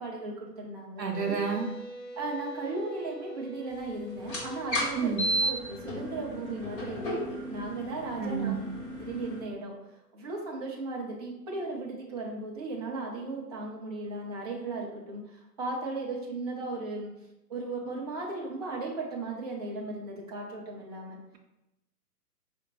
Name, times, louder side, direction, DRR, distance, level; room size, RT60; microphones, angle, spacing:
voice 1, 0.0-1.4 2.2-5.1 5.4-8.6 9.0-9.7 10.1-17.1 17.5-21.2, right 3 dB, 25° right, -3 dB, 0.6 m, -36 dB
voice 2, 1.0-1.7 5.0-5.3 8.2-8.6, right 6 dB, 85° right, 3 dB, 0.8 m, -29 dB
sound 1, 1.1-9.2, right 1 dB, 40° left, 1.3 m, -46 dB
sound 2, 4.2-9.4, equal, 20° left, 1.2 m, -33 dB
5.0 x 2.2 x 4.0 m, 0.92 s
figure-of-eight pair, 125°, 48 cm